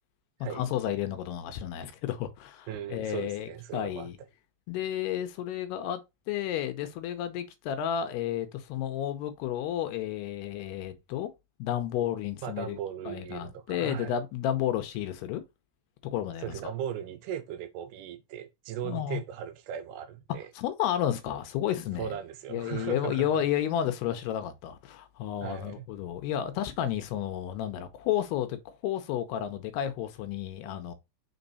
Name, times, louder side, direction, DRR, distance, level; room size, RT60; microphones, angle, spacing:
voice 1, 0.5-4.1 4.7-6.0 6.3-11.3 11.6-12.8 13.1-15.4 16.0-16.6 18.8-19.2 20.5-22.1 22.5-30.9, left 10 dB, 75° left, 2.5 m, -32 dB
voice 2, 2.7-4.1 12.4-14.2 16.4-20.5 22.0-23.3 25.4-25.9, right 9 dB, 80° right, 2.6 m, -37 dB
6.1 x 4.5 x 4.0 m
omnidirectional pair, 5.1 m